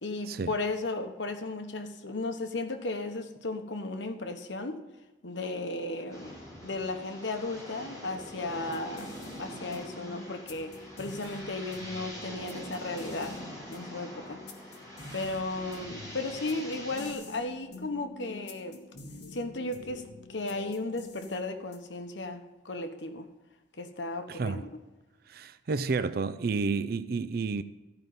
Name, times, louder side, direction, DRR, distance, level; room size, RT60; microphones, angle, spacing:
voice 1, 0.0-4.8 5.2-6.4 6.6-9.1 9.4-13.4 13.7-14.4 15.1-18.8 19.3-20.0 20.3-23.3 23.8-24.7, left 2 dB, 85° left, 1.1 m, -35 dB
sound 1, 6.1-17.1, equal, 20° left, 3.6 m, -44 dB
sound 2, 8.6-22.1, left 2 dB, 65° left, 1.8 m, -48 dB
voice 2, 24.3-24.6 25.3-27.6, right 4 dB, 55° right, 0.5 m, -30 dB
15.0 x 5.2 x 9.4 m
head